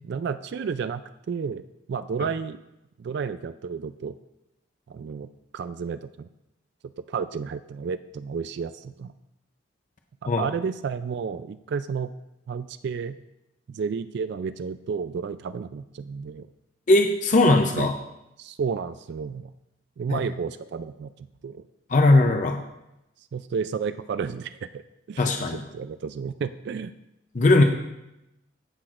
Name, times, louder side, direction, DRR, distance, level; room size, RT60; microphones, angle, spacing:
voice 1, 0.0-2.6 3.0-4.2 4.9-6.3 6.8-9.1 10.2-12.1 12.5-13.2 13.7-16.5 17.8-17.9 18.4-19.5 20.0-21.6 23.3-24.8 25.1-25.3 25.7-26.9, right 6 dB, 60° right, 12 dB, 0.3 m, -32 dB
voice 2, 16.9-17.9 20.1-20.2 21.9-22.6 25.2-25.6 27.3-27.6, left 2 dB, 40° left, 4 dB, 0.6 m, -19 dB
16.0 x 5.9 x 2.4 m, 0.90 s
head